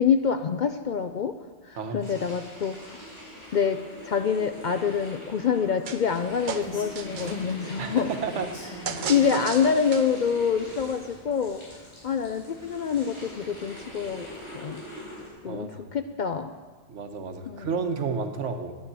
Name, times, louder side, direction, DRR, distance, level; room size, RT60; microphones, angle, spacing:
voice 1, 0.0-1.4 1.6-3.0 3.5-8.1 9.0-11.6 12.0-14.3 14.5-14.8 15.4-16.5 17.4-17.7, left 7 dB, 60° left, 8 dB, 0.5 m, -26 dB
sound 1, 2.0-15.3, equal, 80° left, 4.4 m, -43 dB
sound 2, 5.9-6.2 6.5-7.5 8.9-10.3, right 6 dB, 50° right, 0.7 m, -34 dB
Rain, 6.4-14.6, left 1 dB, 30° left, 1.9 m, -46 dB
voice 2, 7.8-8.5 9.0-9.1 15.5-15.9 16.9-18.8, right 5 dB, 90° right, 7 dB, 1.3 m, -31 dB
9.8 x 8.9 x 7.4 m, 1.4 s
omnidirectional pair, 1.2 m